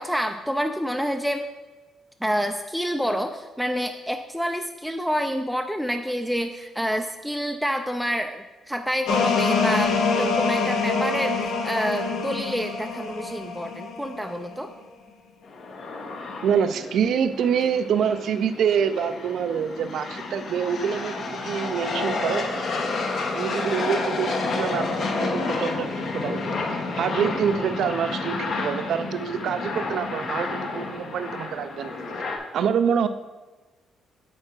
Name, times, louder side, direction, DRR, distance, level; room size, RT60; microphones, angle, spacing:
voice 1, 0.0-1.4 2.2-14.7, equal, ahead, 5 dB, 0.4 m, -28 dB
sound 1, 9.1-14.5, left 4 dB, 85° left, 0.9 m, -25 dB
sound 2, 15.4-32.4, left 3 dB, 60° left, 1.1 m, -30 dB
voice 2, 16.4-22.5 23.3-31.9 32.5-33.1, right 7 dB, 70° right, 10 dB, 0.4 m, -26 dB
8.8 x 3.8 x 4.5 m, 1.2 s
cardioid pair, 90°, 0 cm